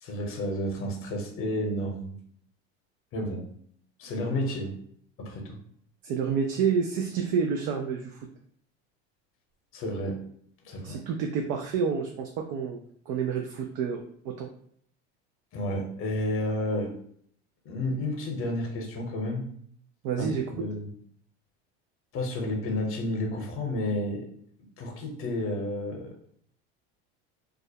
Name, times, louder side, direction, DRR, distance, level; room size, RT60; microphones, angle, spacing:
voice 1, 0.0-2.1 3.1-3.5 4.0-4.7 5.2-5.6 9.7-10.2 10.6-11.0 15.5-16.9 17.6-19.5 20.2-20.9 22.1-24.3 24.8-26.1, left 1 dB, 40° left, 2 dB, 0.8 m, -31 dB
voice 2, 6.0-8.3 10.8-12.8 13.1-14.5 20.0-20.4, right 6 dB, 60° right, 3 dB, 0.4 m, -29 dB
2.4 x 2.0 x 2.7 m, 0.63 s
supercardioid pair, 110°, 34 cm